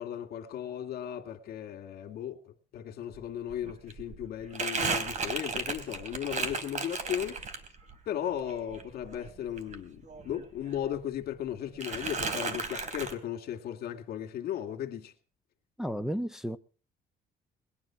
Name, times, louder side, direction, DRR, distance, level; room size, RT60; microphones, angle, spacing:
voice 1, 0.0-7.7 8.1-15.1, left 10 dB, 65° left, 2.4 m, -36 dB
Crumpling crinkling, 3.1-3.2 3.5-7.9 8.3-10.5 10.7-11.5 11.8-13.1, right 4 dB, 45° right, 3.0 m, -35 dB
voice 2, 15.8-16.6, equal, 5° right, 0.7 m, -32 dB
20.5 x 10.5 x 6.0 m
cardioid pair, 110°, 17 cm